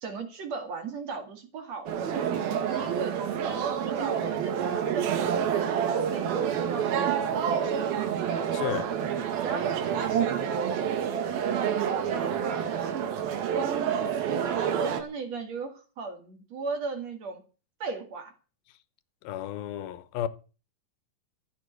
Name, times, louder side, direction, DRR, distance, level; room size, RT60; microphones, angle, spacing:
voice 1, 0.0-5.1 5.5-8.2 9.4-17.4 17.8-18.3, right 4 dB, 50° right, 3.0 m, -38 dB
sound 1, 1.9-15.0, right 8 dB, 85° right, 3.5 m, -28 dB
voice 2, 8.5-9.0 19.2-20.3, left 11 dB, 85° left, 2.8 m, -33 dB
14.0 x 8.1 x 8.0 m
omnidirectional pair, 4.1 m